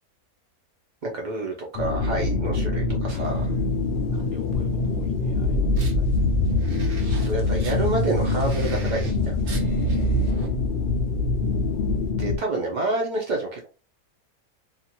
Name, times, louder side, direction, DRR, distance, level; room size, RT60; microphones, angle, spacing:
voice 1, 1.0-3.4 7.2-9.4 12.2-13.7, right 2 dB, 80° right, 0 dB, 0.4 m, -28 dB
sound 1, 1.7-12.4, left 3 dB, 85° left, 0.4 m, -25 dB
voice 2, 3.1-5.6 6.0-6.3 9.4-10.6, right 2 dB, 15° right, -2 dB, 0.8 m, -43 dB
sound 2, 3.2-10.3, left 2 dB, 60° left, 0.8 m, -35 dB
sound 3, 5.5-10.5, right 1 dB, 50° right, 0.8 m, -28 dB
2.6 x 2.4 x 2.8 m, 0.33 s
omnidirectional pair, 1.5 m